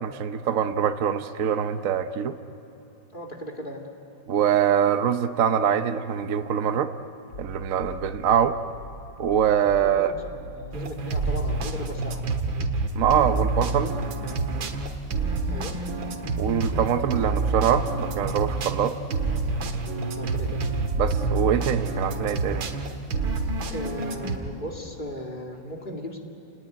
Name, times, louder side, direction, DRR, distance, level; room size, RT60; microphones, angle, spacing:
voice 1, 0.0-2.4 4.3-6.9 7.4-8.6 9.2-10.1 13.0-13.9 16.4-18.9 21.0-22.7, right 8 dB, 55° right, 9 dB, 1.0 m, -24 dB
voice 2, 3.1-3.9 9.8-12.2 15.5-15.8 20.1-20.7 23.7-26.2, equal, 25° left, 1 dB, 2.5 m, -37 dB
sound 1, 7.3-18.6, equal, 80° left, 2.4 m, -42 dB
sound 2, 10.7-24.4, right 3 dB, 85° right, 2.3 m, -28 dB
29.5 x 19.0 x 9.4 m, 3.0 s
omnidirectional pair, 2.1 m